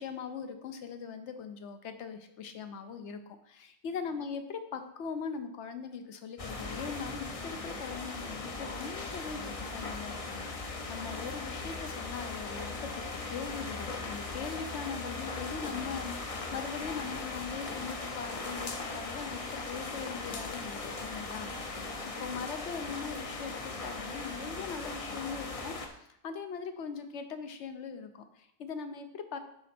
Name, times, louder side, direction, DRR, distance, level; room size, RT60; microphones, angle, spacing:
voice 1, 0.0-21.9 22.2-29.4, left 6 dB, 70° left, 8 dB, 1.0 m, -41 dB
sound 1, 6.4-25.9, left 3 dB, 35° left, 0.6 m, -39 dB
11.0 x 4.1 x 4.3 m, 0.77 s
omnidirectional pair, 1.3 m